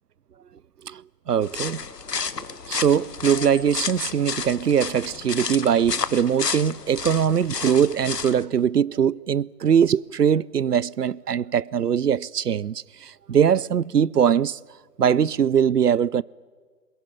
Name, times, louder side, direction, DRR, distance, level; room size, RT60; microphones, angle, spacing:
voice 1, 1.3-1.8 2.7-14.6 15.0-16.2, right 8 dB, 70° right, 0.6 m, -21 dB
sound 1, 1.4-8.4, left 5 dB, 75° left, 1.0 m, -31 dB
21.5 x 16.0 x 9.7 m
figure-of-eight pair, 145°, 49 cm